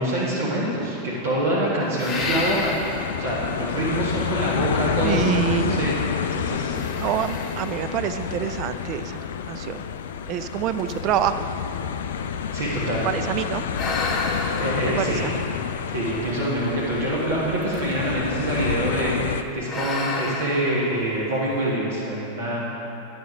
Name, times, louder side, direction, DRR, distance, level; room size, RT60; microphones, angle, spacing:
voice 1, 0.0-2.7 3.2-6.0 6.3-6.8 12.5-13.0 14.2-15.3 15.9-22.6, right 1 dB, 60° right, -7 dB, 1.3 m, -26 dB
sound 1, 2.0-3.3 3.9-4.0 5.4-6.2 6.7-9.1 9.8-9.9 10.4-10.5 10.8-13.1 13.7-16.4 17.6-18.1 18.4-18.8 19.6-21.5, left 3 dB, 25° left, 1.0 m, -32 dB
sound 2, 2.2-19.4, left 8 dB, 60° left, 0.3 m, -29 dB
voice 2, 5.0-5.9 7.0-9.2 9.5-9.8 10.3-11.5 13.0-13.6 14.8-15.4, right 10 dB, 40° right, 11 dB, 0.3 m, -26 dB
10.5 x 6.4 x 3.7 m, 3.0 s
figure-of-eight pair, 90°, 0 cm